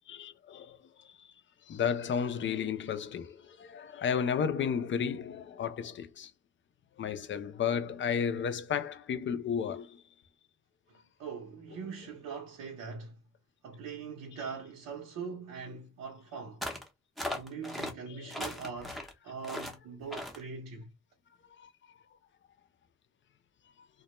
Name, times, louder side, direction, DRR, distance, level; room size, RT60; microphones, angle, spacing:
voice 1, 0.1-1.3 1.7-6.3 7.0-10.0 18.1-18.4 21.5-21.7, left 7 dB, 40° left, 0.4 m, -33 dB
voice 2, 11.2-13.1 13.6-16.6 17.3-20.9, right 5 dB, 85° right, 0.8 m, -42 dB
sound 1, 16.6-16.9 17.2-17.9 18.3-19.1 19.4-19.8 20.1-20.4, left 1 dB, ahead, 0.6 m, -37 dB
2.2 x 2.1 x 2.8 m
cardioid pair, 90°, 30 cm